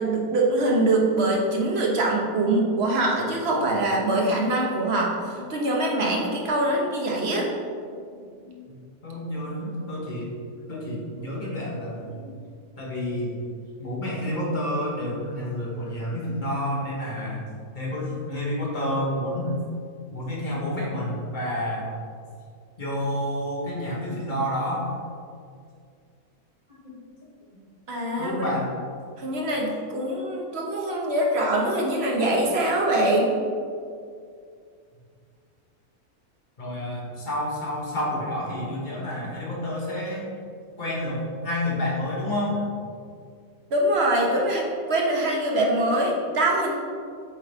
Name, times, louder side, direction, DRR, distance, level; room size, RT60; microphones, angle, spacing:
voice 1, 0.0-7.5 27.9-28.4 29.2-33.3 43.7-46.7, right 1 dB, 50° right, -1 dB, 1.0 m, -23 dB
voice 2, 7.4-7.7 8.1-8.2 8.4-8.8 9.0-10.3 10.7-12.3 12.8-13.4 13.8-17.5 17.7-19.5 20.1-21.9 22.8-24.9 26.8-27.0 28.1-28.7 36.6-40.3 40.8-42.7, left 1 dB, 35° left, -5 dB, 1.4 m, -29 dB
7.2 x 3.8 x 3.5 m, 2.2 s
omnidirectional pair, 1.6 m